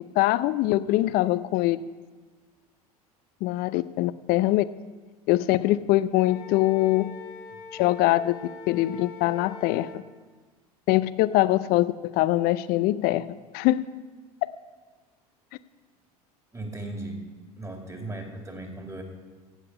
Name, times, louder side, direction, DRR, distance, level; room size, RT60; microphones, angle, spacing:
voice 1, 0.2-1.8 3.4-4.7 5.3-7.1 7.7-9.9 10.9-13.2 13.5-13.8, left 16 dB, 50° left, 16 dB, 0.6 m, -23 dB
Wind instrument woodwind instrument, 6.1-10.0, left 5 dB, 65° left, 1.5 m, -43 dB
voice 2, 16.5-17.2 17.5-19.0, right 2 dB, 15° right, 2 dB, 2.6 m, -37 dB
15.5 x 8.4 x 5.4 m, 1.4 s
hypercardioid pair, 75°, 20 cm